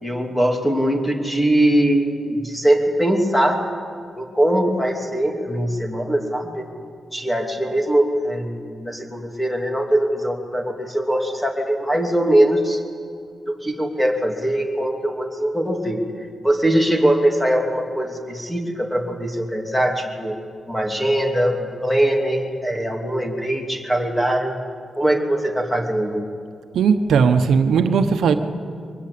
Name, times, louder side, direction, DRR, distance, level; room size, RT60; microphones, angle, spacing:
voice 1, 0.0-3.6 4.2-6.7 7.1-12.8 13.5-16.0 16.4-20.3 20.7-24.6 25.0-26.2, right 1 dB, 5° left, 2 dB, 2.9 m, -21 dB
voice 2, 26.7-28.3, right 6 dB, 90° right, 8 dB, 1.1 m, -17 dB
22.5 x 19.5 x 8.6 m, 2.2 s
wide cardioid pair, 115°, 0 cm